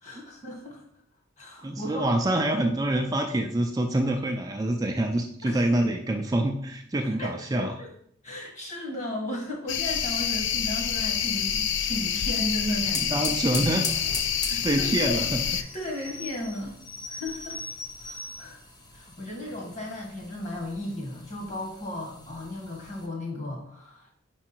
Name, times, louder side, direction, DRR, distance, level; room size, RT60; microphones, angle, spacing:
voice 1, 0.0-0.8 1.4-2.1 5.4-5.7 7.0-7.9 8.2-13.2 14.4-15.2 15.5-16.7 17.1-17.6 18.0-18.6 18.9-24.1, left 1 dB, 35° left, -1 dB, 1.7 m, -35 dB
voice 2, 1.6-7.8 13.0-13.9 14.4-15.4, right 1 dB, 20° right, 3 dB, 0.4 m, -26 dB
sound 1, 9.7-15.6, left 8 dB, 65° left, 0.4 m, -27 dB
sound 2, 12.6-23.1, left 2 dB, 20° left, 0.7 m, -42 dB
sound 3, 15.4-18.6 19.2-19.3 19.5-19.9 20.6-20.9 21.3-21.4 21.6-21.7, left 2 dB, 80° left, 1.7 m, -41 dB
4.9 x 4.6 x 4.4 m, 0.67 s
head